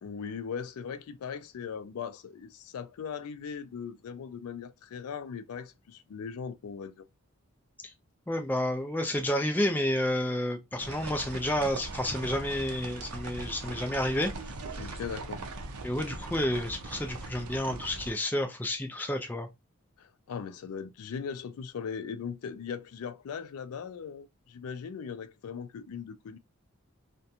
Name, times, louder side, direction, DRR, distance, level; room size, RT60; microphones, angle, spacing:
voice 1, 0.0-7.1 14.8-15.4 20.0-26.4, left 6 dB, 85° left, 0.4 m, -39 dB
voice 2, 8.3-14.3 14.7-14.9 15.8-19.5, left 1 dB, 10° left, 0.3 m, -30 dB
sound 1, 10.8-18.1, right 3 dB, 90° right, 0.5 m, -40 dB
2.4 x 2.2 x 2.6 m
head